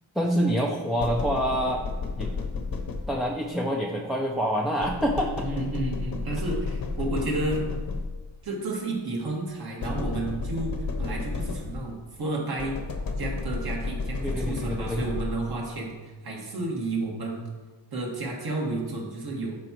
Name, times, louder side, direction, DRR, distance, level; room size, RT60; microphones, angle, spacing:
voice 1, 0.2-1.9 2.2-2.3 3.1-5.5 14.2-15.0, equal, ahead, -1 dB, 0.4 m, -26 dB
sound 1, 1.0-3.5 4.8-8.4 9.8-12.0 12.6-15.7, left 3 dB, 45° left, 0.9 m, -32 dB
voice 2, 5.4-7.7 8.4-12.8 13.2-17.5 17.9-19.6, right 2 dB, 50° right, -2 dB, 2.0 m, -31 dB
12.5 x 4.9 x 3.0 m, 1.3 s
wide cardioid pair, 145°, 47 cm